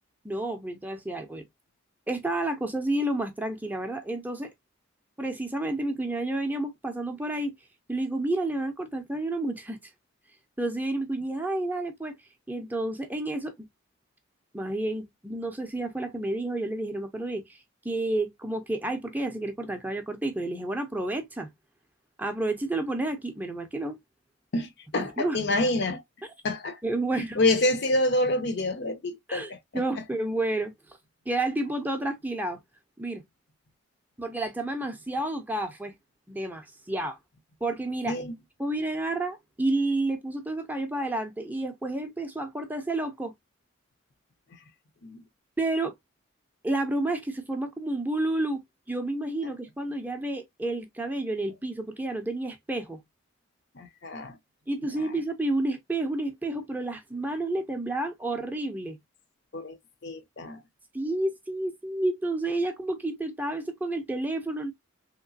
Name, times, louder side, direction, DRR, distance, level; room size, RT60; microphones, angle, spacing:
voice 1, 0.2-1.4 2.1-4.5 5.2-7.5 7.9-9.8 10.6-12.2 12.5-13.5 14.5-17.6 17.8-21.5 22.2-24.0 24.9-25.4 26.8-27.4 29.3-30.7 31.3-32.6 33.0-33.2 34.2-35.9 36.3-37.2 37.6-38.2 38.6-43.3 45.6-45.9 46.6-48.6 48.9-53.0 54.7-59.0 60.9-64.7, right 2 dB, 10° right, 0.5 m, -30 dB
voice 2, 24.5-26.0 26.4-26.8 27.1-30.0 38.0-38.3 45.0-45.2 53.7-54.4 54.8-55.1 59.5-59.8 60.0-60.6, left 2 dB, 55° left, 0.6 m, -28 dB
3.1 x 2.9 x 2.6 m
head